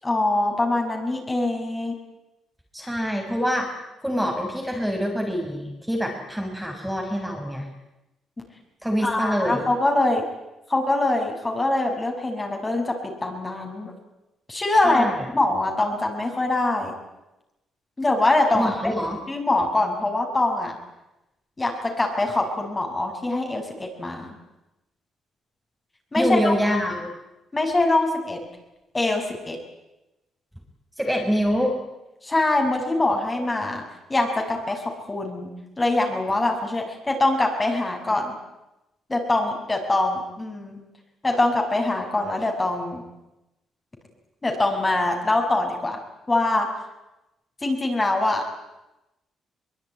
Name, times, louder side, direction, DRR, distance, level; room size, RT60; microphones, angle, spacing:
voice 1, 0.0-1.9 9.0-10.2 10.7-13.9 14.5-15.1 15.3-16.9 18.0-18.9 19.3-20.7 21.6-24.3 26.1-26.5 27.5-28.4 28.9-29.6 32.2-33.8 34.1-38.3 39.1-40.8 41.2-43.0 44.4-46.0 46.3-46.7 47.6-48.4, left 2 dB, 20° left, 2 dB, 6.6 m, -23 dB
voice 2, 2.7-3.7 4.0-7.7 8.8-9.6 14.8-15.3 18.5-19.2 26.2-27.1 31.0-31.8, equal, ahead, 1 dB, 5.6 m, -25 dB
23.5 x 21.5 x 9.7 m, 0.96 s
cardioid pair, 90°, 0 cm